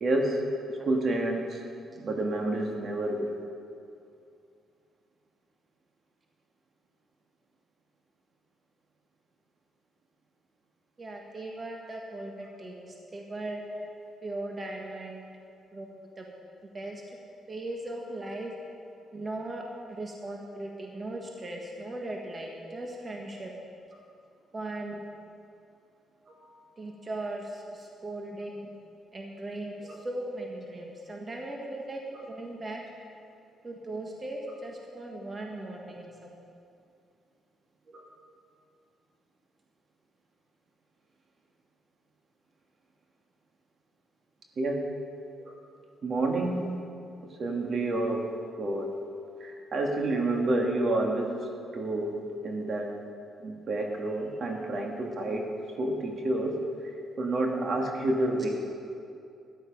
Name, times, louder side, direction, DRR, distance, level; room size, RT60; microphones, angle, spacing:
voice 1, 0.0-1.6 1.9-3.3 13.7-13.9 26.3-26.6 29.8-30.0 31.7-31.8 37.9-38.0 44.6-44.8 45.4-45.6 46.0-46.6 47.4-48.3 48.6-48.9 49.4-52.9 53.4-55.5 55.8-56.6 57.2-58.5, right 2 dB, 50° right, 1 dB, 1.9 m, -29 dB
voice 2, 11.0-13.6 14.2-15.2 15.7-16.3 16.7-17.2 17.5-18.5 19.1-23.5 24.5-25.0 26.8-28.7 29.1-32.8 33.6-36.3, right 1 dB, 30° right, 0 dB, 1.6 m, -38 dB
13.5 x 11.0 x 5.3 m, 2.5 s
cardioid pair, 90°, 0 cm